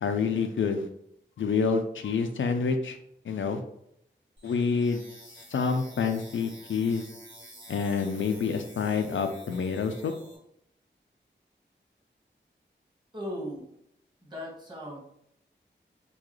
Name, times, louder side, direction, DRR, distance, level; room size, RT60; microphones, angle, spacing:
voice 1, 0.0-0.9 1.4-3.0 3.2-3.6 4.4-5.0 5.5-7.1 7.7-10.1, left 5 dB, 85° left, 7 dB, 0.4 m, -27 dB
sound 1, 4.4-10.4, right 1 dB, 65° right, 1.3 m, -50 dB
voice 2, 13.1-13.7 14.2-15.0, equal, 25° right, -2 dB, 1.5 m, -37 dB
3.8 x 2.2 x 3.1 m, 0.75 s
cardioid pair, 45°, 20 cm